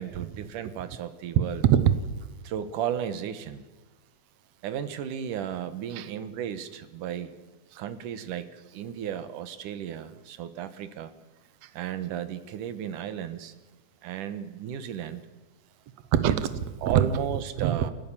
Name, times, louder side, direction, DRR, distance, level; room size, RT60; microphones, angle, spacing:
voice 1, 0.0-1.6 2.4-3.6 4.6-7.3 7.8-11.1 11.7-13.5 14.0-15.2 16.2-16.4 16.8-17.9, right 9 dB, 90° right, 12 dB, 2.9 m, -34 dB
voice 2, 1.6-2.3 5.9-6.1 11.6-11.7 16.1-17.0 17.6-17.8, right 10 dB, 65° right, 12 dB, 2.1 m, -24 dB
29.0 x 14.5 x 7.4 m, 1.2 s
omnidirectional pair, 3.6 m